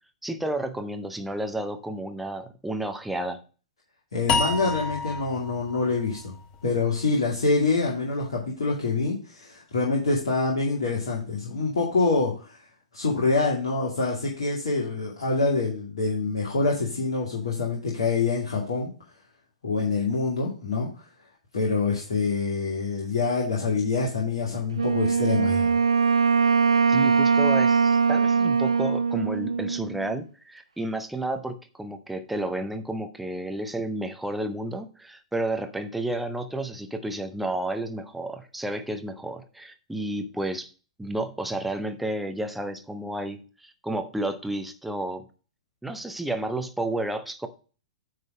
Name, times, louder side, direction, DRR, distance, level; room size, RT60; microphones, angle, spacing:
voice 1, 0.2-3.4 26.9-40.7 41.0-45.3 45.8-47.5, right 1 dB, 5° right, 7 dB, 0.8 m, -31 dB
voice 2, 4.1-6.3 6.6-12.6 12.9-18.9 19.6-21.0 21.5-25.8, left 3 dB, 60° left, -3 dB, 2.2 m, -26 dB
sound 1, 4.3-7.5, left 4 dB, 30° left, 0.9 m, -30 dB
Wind instrument woodwind instrument, 24.7-30.2, right 5 dB, 75° right, 0.3 m, -22 dB
9.1 x 4.0 x 4.9 m, 0.36 s
figure-of-eight pair, 105°, 3 cm